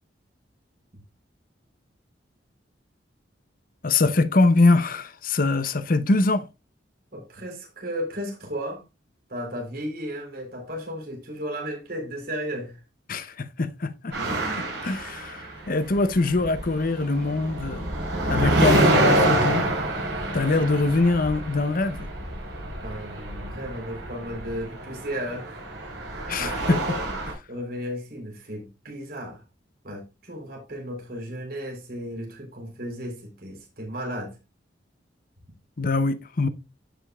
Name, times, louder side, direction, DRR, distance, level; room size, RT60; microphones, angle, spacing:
voice 1, 3.8-6.5 13.1-14.2 14.6-17.9 18.3-19.7 20.3-22.1 26.3-26.8 35.8-36.5, left 3 dB, 50° left, 0.7 m, -23 dB
voice 2, 7.1-8.8 9.3-12.8 22.8-25.7 26.1-27.0 27.5-29.4 29.8-34.4, equal, 55° right, 3.7 m, -34 dB
sound 1, 14.1-15.9 16.2-27.3, right 1 dB, 75° right, 4.9 m, -27 dB
14.5 x 5.1 x 2.4 m
head